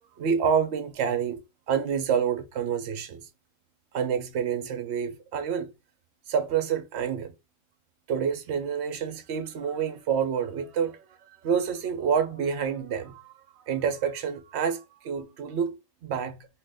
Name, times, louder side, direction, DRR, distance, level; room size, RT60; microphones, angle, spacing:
voice 1, 0.2-1.4 1.7-3.2 3.9-5.7 6.3-7.3 8.1-11.0 11.4-13.3 13.7-16.5, right 7 dB, 60° right, 0.8 m, -28 dB
3.0 x 2.5 x 3.3 m
omnidirectional pair, 1.5 m